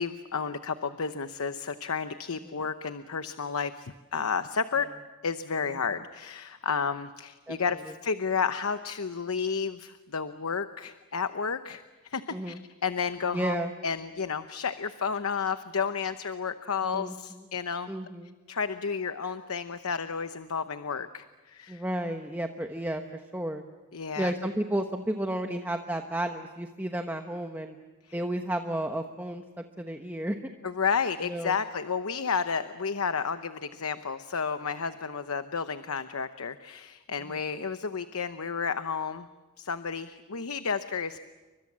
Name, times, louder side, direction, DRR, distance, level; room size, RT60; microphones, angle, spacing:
voice 1, 0.0-4.9 5.2-17.9 18.5-21.8 23.9-24.3 30.6-39.3 39.6-41.2, left 5 dB, 85° left, 10 dB, 0.9 m, -31 dB
voice 2, 13.3-13.7 16.8-17.4 17.9-18.3 21.7-23.6 24.2-27.8 28.1-30.4 31.3-31.5, right 1 dB, 10° right, 5 dB, 1.1 m, -32 dB
30.0 x 24.5 x 7.5 m, 1.2 s
head